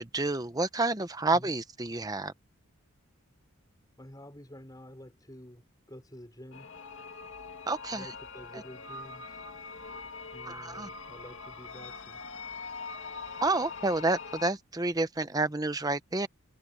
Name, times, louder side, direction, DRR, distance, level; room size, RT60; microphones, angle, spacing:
voice 1, 0.0-2.3 7.7-8.1 8.5-8.6 10.5-10.9 13.4-16.3, right 2 dB, 15° right, 0.9 m, -29 dB
voice 2, 4.0-6.7 7.9-9.4 10.3-12.2, equal, 15° left, 5.8 m, -49 dB
sound 1, 6.5-14.5, left 4 dB, 60° left, 2.5 m, -43 dB
open air
head